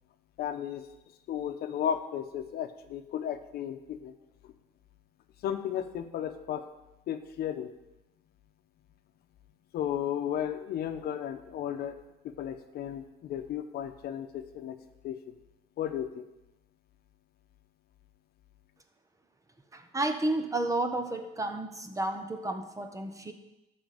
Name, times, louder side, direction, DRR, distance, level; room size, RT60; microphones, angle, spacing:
voice 1, 0.4-0.9 1.3-4.1 4.4-4.5 5.4-6.6 7.1-7.7 9.7-12.0 12.2-14.8 15.0-15.2 15.8-16.3, left 9 dB, 70° left, 8 dB, 0.9 m, -34 dB
voice 2, 19.7-23.3, right 2 dB, 20° right, 7 dB, 1.1 m, -31 dB
12.5 x 4.3 x 7.7 m, 0.95 s
cardioid pair, 110°, 17 cm